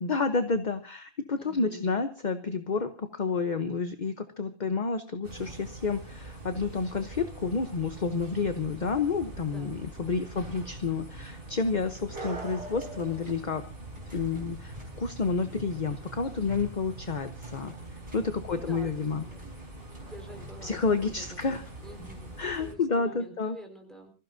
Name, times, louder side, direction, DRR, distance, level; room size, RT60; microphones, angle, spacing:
voice 1, 0.0-13.6 14.1-17.7 18.1-19.2 20.6-21.6 22.4-23.6, left 4 dB, 45° left, 8 dB, 1.0 m, -30 dB
voice 2, 1.4-1.8 9.4-10.3 18.5-19.5 20.0-20.8 21.0-22.3 22.6-24.1, equal, ahead, 3 dB, 4.5 m, -48 dB
sound 1, 5.2-22.7, right 2 dB, 55° right, 4.0 m, -43 dB
sound 2, 11.9-22.4, right 1 dB, 25° right, 5.1 m, -52 dB
26.0 x 15.5 x 2.7 m, 0.36 s
omnidirectional pair, 1.1 m